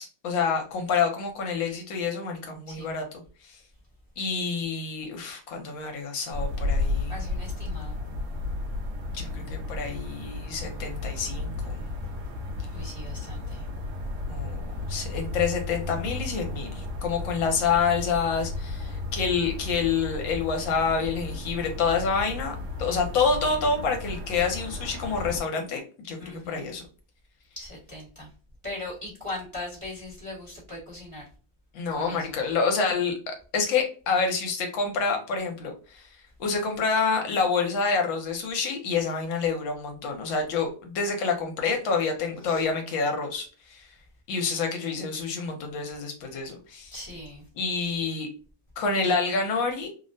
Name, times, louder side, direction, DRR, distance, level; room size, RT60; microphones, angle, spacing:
voice 1, 0.0-3.0 3.4-3.6 4.2-7.1 9.1-11.8 14.3-26.2 26.5-26.8 31.7-36.1 36.4-43.9 44.3-46.9 47.5-48.3 48.8-49.9, left 5 dB, 75° left, 1.4 m, -28 dB
sound 1, 6.3-25.4, left 2 dB, 65° right, 0.8 m, -33 dB
voice 2, 7.1-8.0 12.7-13.7 26.2-26.7 27.6-28.3 28.6-31.3 31.9-32.4 42.4-42.6 46.9-47.4, left 2 dB, 20° right, 0.9 m, -39 dB
3.4 x 2.1 x 2.5 m
omnidirectional pair, 2.2 m